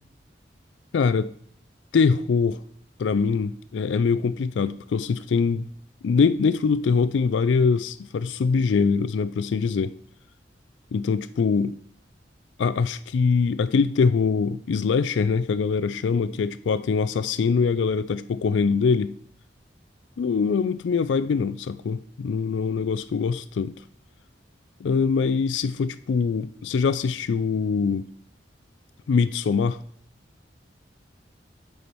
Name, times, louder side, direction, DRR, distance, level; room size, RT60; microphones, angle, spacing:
voice 1, 0.9-1.3 1.9-2.6 3.0-5.7 6.0-9.9 10.9-11.8 12.6-19.2 20.2-23.8 24.8-28.1 29.1-29.8, left 5 dB, 80° left, 0.4 m, -23 dB
8.3 x 5.7 x 4.5 m
head